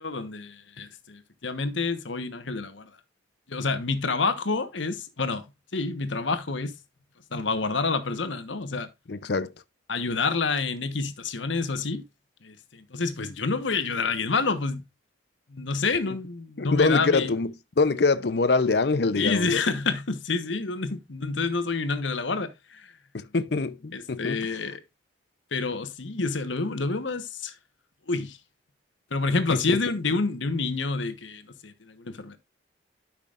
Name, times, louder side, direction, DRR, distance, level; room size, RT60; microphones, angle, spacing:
voice 1, 0.0-2.9 3.5-5.4 5.7-6.8 7.3-8.9 9.9-12.0 12.4-14.8 15.5-17.3 19.1-22.9 23.9-24.8 25.5-27.5 28.1-28.4 29.1-32.4, left 4 dB, 80° left, 1.1 m, -28 dB
voice 2, 9.1-9.5 16.0-16.2 16.6-19.6 23.1-24.6 29.5-29.8, left 3 dB, 60° left, 0.6 m, -25 dB
12.0 x 6.0 x 2.4 m
head